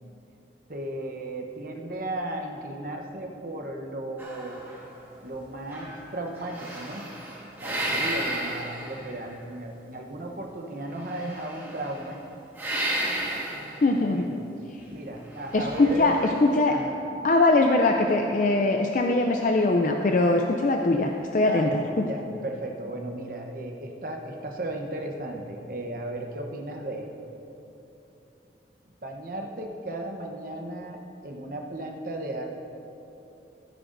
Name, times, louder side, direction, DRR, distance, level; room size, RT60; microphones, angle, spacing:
voice 1, 0.7-4.6 5.2-7.1 7.6-12.2 14.0-14.4 14.9-16.2 16.7-17.0 21.4-21.8 22.1-27.1 29.0-32.5, right 1 dB, 50° right, 2 dB, 0.9 m, -35 dB
sound 1, 4.2-5.4 5.7-9.4 11.0-12.1 12.5-13.9 15.3-16.5, right 1 dB, 15° right, 1.6 m, -33 dB
voice 2, 13.8-14.3 15.5-16.8 17.2-22.1, left 2 dB, 45° left, 3 dB, 0.4 m, -22 dB
16.0 x 9.1 x 2.6 m, 3.0 s
head